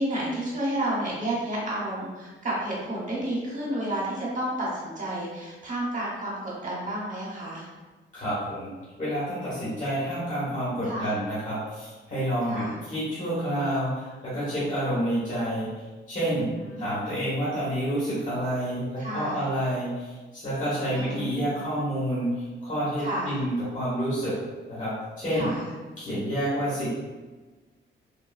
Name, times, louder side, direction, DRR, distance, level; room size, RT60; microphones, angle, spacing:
voice 1, 0.0-7.7 10.8-11.1 12.5-12.7 16.5-16.8 19.0-19.4 20.9-21.4 23.0-23.4 25.3-25.6, right 1 dB, 40° right, -5 dB, 1.1 m, -31 dB
voice 2, 8.1-8.7 9.0-15.7 16.1-16.5 16.8-24.4 24.7-25.5 26.0-26.9, equal, 35° left, -10 dB, 1.3 m, -29 dB
3.5 x 2.2 x 2.4 m, 1.3 s
cardioid pair, 90°, 21 cm